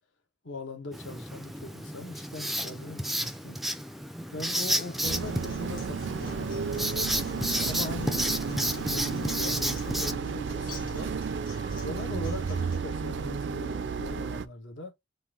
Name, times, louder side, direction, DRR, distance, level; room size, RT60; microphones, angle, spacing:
voice 1, 0.4-3.6 4.3-6.5 7.3-11.1 11.8-14.9, left 2 dB, 70° left, 1.3 m, -40 dB
Writing, 0.9-10.1, right 1 dB, ahead, 0.4 m, -32 dB
Acoustic guitar, 4.8-12.8, left 2 dB, 45° left, 1.8 m, -47 dB
sound 1, 5.0-14.5, right 5 dB, 65° right, 0.4 m, -33 dB
4.1 x 2.6 x 3.7 m
head